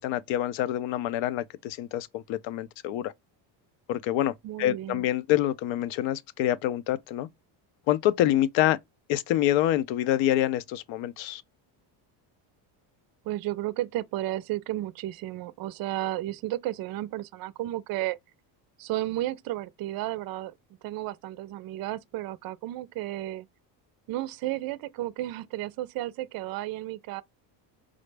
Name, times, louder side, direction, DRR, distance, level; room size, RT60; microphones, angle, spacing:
voice 1, 0.0-3.1 3.9-7.3 7.9-8.8 9.1-11.4, left 13 dB, 65° left, 0.6 m, -26 dB
voice 2, 4.4-5.1 13.2-18.2 18.8-20.5 20.8-23.5 24.1-27.2, right 15 dB, 50° right, 0.5 m, -33 dB
5.0 x 2.0 x 3.3 m
cardioid pair, 115°, 49 cm